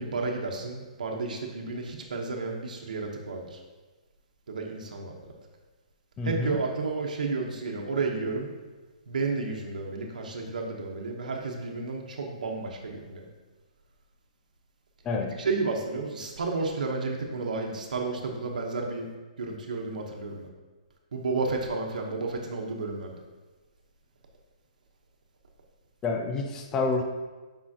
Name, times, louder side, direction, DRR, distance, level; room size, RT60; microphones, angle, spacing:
voice 1, 0.0-3.6 4.5-5.2 6.2-8.5 9.1-13.3 15.4-19.1 19.4-20.5 21.1-23.2, right 3 dB, 80° right, 0 dB, 1.1 m, -32 dB
voice 2, 6.2-6.6 15.0-15.3 26.0-27.0, left 3 dB, 10° left, 3 dB, 0.4 m, -28 dB
8.7 x 5.5 x 2.9 m, 1.3 s
hypercardioid pair, 175°, 4 cm